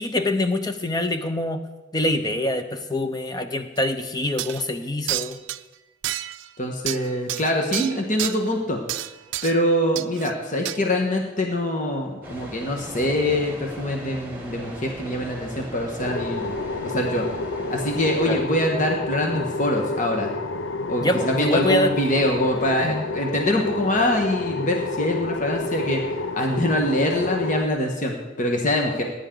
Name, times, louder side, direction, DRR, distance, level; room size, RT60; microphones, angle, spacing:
voice 1, 0.0-1.6 1.9-5.4 18.2-18.4 21.0-21.9 22.8-23.0, left 1 dB, 20° left, 8 dB, 0.8 m, -25 dB
sound 1, 3.8-3.9 4.4-4.6 5.1-5.6 6.0-6.5 6.9-8.4 8.9-9.6 10.0-10.3 10.6-10.8, right 14 dB, 70° right, 0.4 m, -29 dB
voice 2, 6.6-8.8 9.4-16.6 16.8-17.3 17.7-20.3 20.9-26.0 26.3-29.0, left 1 dB, 40° left, 1 dB, 1.4 m, -24 dB
sound 2, 12.2-18.3, right 1 dB, 10° right, 2.6 m, -38 dB
sound 3, 16.0-27.7, left 3 dB, 75° left, 0.5 m, -29 dB
19.0 x 10.0 x 3.9 m, 1.1 s
head